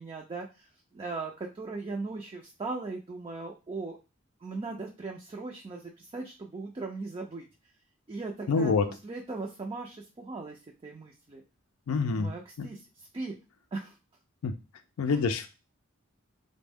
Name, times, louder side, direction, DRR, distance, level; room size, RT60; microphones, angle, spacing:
voice 1, 0.0-4.0 4.4-7.5 8.1-11.4 12.1-13.3 13.7-14.0 15.1-15.2, right 3 dB, 25° right, 1 dB, 0.4 m, -38 dB
voice 2, 8.5-8.9 11.9-12.3 12.6-12.7 14.4-14.5 15.0-15.5, left 4 dB, 80° left, 7 dB, 0.4 m, -26 dB
3.4 x 2.1 x 3.4 m, 0.29 s
head